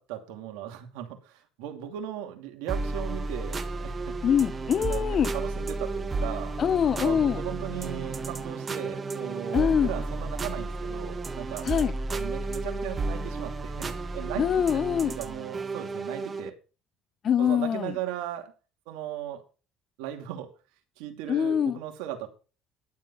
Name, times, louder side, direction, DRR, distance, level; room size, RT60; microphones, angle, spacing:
voice 1, 0.0-4.1 4.8-5.1 5.3-6.6 7.0-11.7 12.1-14.5 14.7-14.8 15.1-16.5 17.4-18.5 18.9-19.4 20.0-20.5 21.0-22.3, right 11 dB, 80° right, 2.6 m, -37 dB
sound 1, 2.7-16.5, right 3 dB, 30° right, 1.5 m, -33 dB
voice 2, 4.2-5.3 6.6-7.4 9.5-9.9 11.6-11.9 14.4-15.1 17.2-17.9 21.3-21.8, left 8 dB, 50° left, 0.8 m, -24 dB
Bowed string instrument, 6.7-10.8, right 5 dB, 5° right, 2.0 m, -42 dB
12.0 x 7.7 x 5.5 m
supercardioid pair, 75°, 0 cm